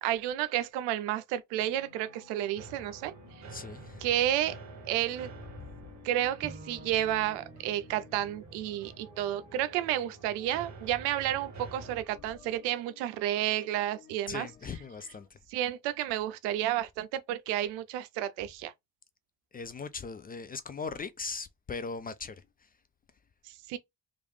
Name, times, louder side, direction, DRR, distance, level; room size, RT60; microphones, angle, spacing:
voice 1, 0.0-3.4 4.0-4.6 4.9-5.3 6.0-14.5 15.5-18.7 23.5-23.8, right 12 dB, 70° right, 0.5 m, -31 dB
sound 1, 1.6-15.3, left 5 dB, 80° left, 0.8 m, -56 dB
sound 2, 2.6-12.0, right 3 dB, 40° right, 1.2 m, -49 dB
voice 2, 3.5-4.2 5.4-5.9 14.3-15.4 19.5-22.7, left 4 dB, 20° left, 0.4 m, -40 dB
Bowed string instrument, 6.4-9.7, right 3 dB, 20° right, 0.7 m, -51 dB
3.1 x 2.5 x 3.1 m
hypercardioid pair, 40°, 42 cm